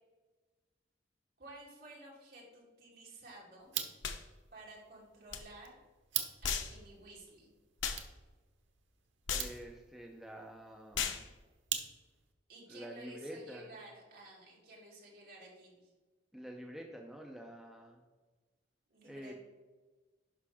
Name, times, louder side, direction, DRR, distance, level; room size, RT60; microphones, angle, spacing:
voice 1, 1.4-3.7 4.5-5.7 6.4-7.5 12.5-15.9 18.9-19.3, right 1 dB, 55° right, -4 dB, 2.9 m, -53 dB
sound 1, 3.6-12.3, right 9 dB, 80° right, 0.9 m, -45 dB
sound 2, 4.0-4.2 5.3-5.4 6.4-6.7 7.8-8.0 9.3-9.5 10.9-11.2, left 6 dB, 90° left, 0.8 m, -35 dB
voice 2, 9.3-11.3 12.7-13.7 16.3-18.0 19.0-19.3, right 1 dB, ahead, 0 dB, 0.6 m, -48 dB
9.9 x 5.8 x 3.5 m, 1.2 s
head